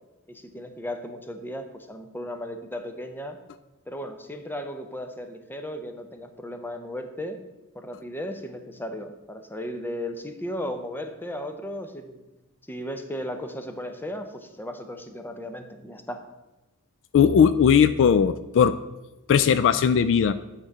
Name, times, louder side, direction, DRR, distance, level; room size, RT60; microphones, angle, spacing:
voice 1, 0.3-3.4 3.9-7.4 7.7-12.2 12.7-16.2, equal, 10° left, 7 dB, 0.7 m, -35 dB
voice 2, 17.1-18.7 19.3-20.3, left 7 dB, 55° left, 13 dB, 0.3 m, -18 dB
9.1 x 3.7 x 6.5 m, 1.0 s
head